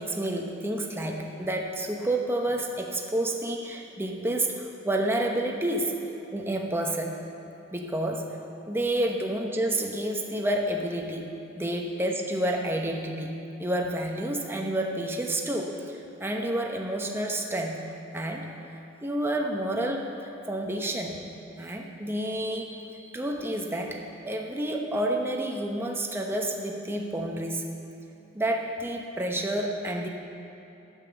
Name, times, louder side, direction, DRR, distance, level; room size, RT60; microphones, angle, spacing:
voice 1, 0.0-5.9 6.3-7.2 7.7-8.3 8.7-11.3 11.6-17.8 18.1-18.5 19.0-20.1 20.5-21.2 21.6-27.7 28.3-30.1, right 1 dB, 10° right, 1 dB, 0.9 m, -29 dB
8.8 x 8.2 x 7.0 m, 3.0 s
head